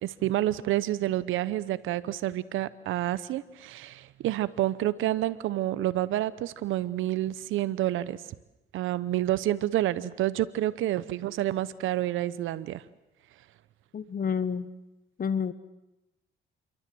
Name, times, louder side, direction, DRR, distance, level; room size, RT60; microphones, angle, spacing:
voice 1, 0.0-8.2 8.7-12.8, right 14 dB, 85° right, 16 dB, 0.9 m, -29 dB
voice 2, 13.9-14.6 15.2-15.5, left 6 dB, 45° left, 14 dB, 1.4 m, -29 dB
27.0 x 23.5 x 7.8 m, 0.95 s
cardioid pair, 90°, 20 cm